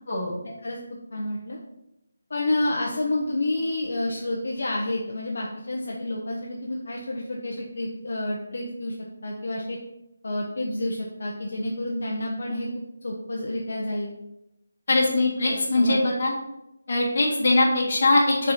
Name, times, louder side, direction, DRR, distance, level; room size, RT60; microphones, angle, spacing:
voice 1, 0.4-0.8 1.1-1.6 2.3-9.0 9.2-9.8 10.2-12.7 13.0-14.1 15.5-16.0, left 1 dB, 60° left, -2 dB, 1.0 m, -29 dB
voice 2, 14.9-16.3 16.9-18.5, left 2 dB, 40° left, -3 dB, 2.0 m, -21 dB
6.7 x 4.4 x 4.2 m, 0.88 s
figure-of-eight pair, 175°, 0 cm